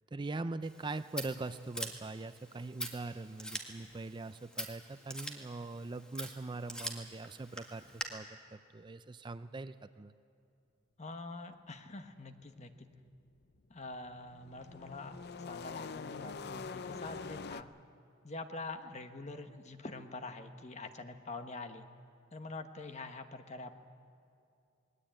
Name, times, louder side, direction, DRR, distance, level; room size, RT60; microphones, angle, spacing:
voice 1, 0.1-10.1, right 3 dB, 25° right, 12 dB, 0.4 m, -42 dB
Scissors, 0.6-8.0, equal, 5° left, 1.9 m, -45 dB
voice 2, 11.0-12.9 13.7-15.2 15.5-17.7 18.2-21.8 22.3-23.7, left 3 dB, 35° left, 8 dB, 1.2 m, -45 dB
sound 1, 13.5-17.6, left 4 dB, 55° left, 0.6 m, -44 dB
20.0 x 19.5 x 8.9 m, 2.6 s
head